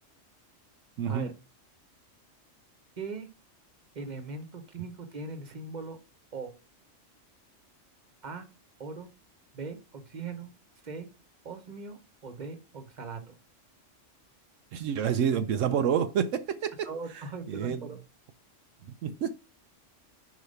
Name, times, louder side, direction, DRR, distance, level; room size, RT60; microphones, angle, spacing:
voice 1, 1.0-1.3 14.7-16.9 17.5-17.8 19.0-19.3, right 8 dB, 80° right, 1.0 m, -28 dB
voice 2, 3.0-3.3 3.9-6.0 6.3-6.5 8.2-8.5 8.8-9.1 9.5-10.5 10.8-11.1 11.4-13.3 16.8-18.0, right 4 dB, 35° right, 1.3 m, -40 dB
5.0 x 5.0 x 5.4 m
omnidirectional pair, 1.3 m